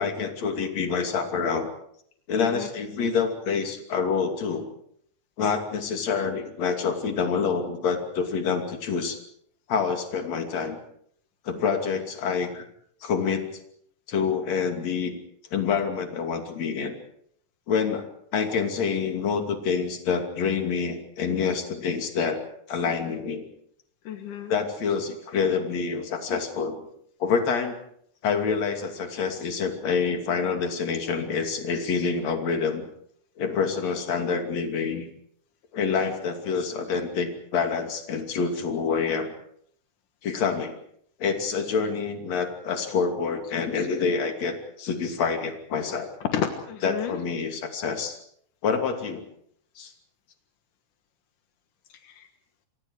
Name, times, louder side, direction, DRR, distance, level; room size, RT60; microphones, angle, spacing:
voice 1, 0.0-1.7 2.3-4.7 5.4-9.2 9.7-10.8 11.5-12.6 13.0-13.5 14.1-15.1 15.5-16.9 17.7-18.0 18.3-22.4 22.7-23.4 24.5-26.8 27.2-27.8 28.2-32.8 33.4-35.1 35.7-39.3 40.2-40.8 41.2-46.1 46.8-48.2 48.6-49.2 49.8-49.9, left 5 dB, 60° left, 5 dB, 3.9 m, -27 dB
voice 2, 2.4-2.7 24.0-24.5 46.2-47.2 51.9-52.3, left 8 dB, 85° left, 6 dB, 3.0 m, -31 dB
28.0 x 25.0 x 4.8 m, 0.66 s
omnidirectional pair, 3.5 m